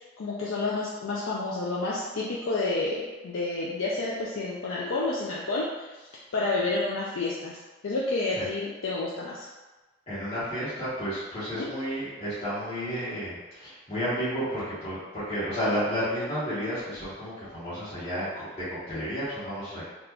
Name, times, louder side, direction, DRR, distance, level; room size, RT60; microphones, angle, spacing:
voice 1, 0.0-5.9 6.3-7.5 7.8-9.5 11.5-11.7, left 2 dB, 85° left, -6 dB, 0.5 m, -30 dB
voice 2, 10.1-19.8, equal, 35° left, -13 dB, 1.0 m, -32 dB
3.6 x 2.4 x 3.0 m, 1.2 s
head